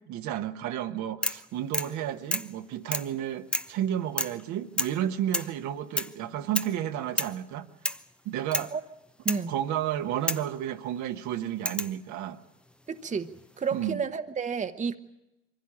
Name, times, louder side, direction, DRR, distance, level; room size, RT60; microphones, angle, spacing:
voice 1, 0.1-7.7 8.2-8.7 9.5-12.4 13.7-14.0, right 11 dB, 55° right, 1.3 m, -32 dB
sound 1, 1.2-1.5 1.7-2.0 2.3-2.5 2.9-3.1 3.5-3.8 4.2-4.4 4.8-5.0 5.3-5.6 6.0-6.2 6.6-6.8 7.2-7.4 7.8-8.1 8.5-8.7 9.3-9.5 10.3-10.5 11.7-12.0 13.1-13.6, left 1 dB, 5° left, 0.7 m, -31 dB
voice 2, 12.9-13.3 13.6-15.0, right 5 dB, 20° right, 1.1 m, -30 dB
24.0 x 16.0 x 8.6 m
hypercardioid pair, 70°, 34 cm